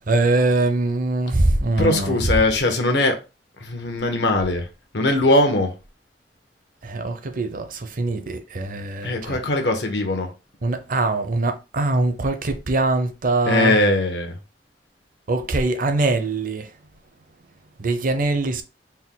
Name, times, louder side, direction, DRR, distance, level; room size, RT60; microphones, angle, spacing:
voice 1, 0.0-2.3 6.8-9.4 10.6-13.8 15.3-16.7 17.8-18.6, right 2 dB, 50° right, 0.6 m, -22 dB
voice 2, 1.8-3.2 3.6-4.7 4.9-5.7 9.0-10.3 13.5-14.3, left 2 dB, 70° left, 0.9 m, -20 dB
4.3 x 2.2 x 3.8 m
head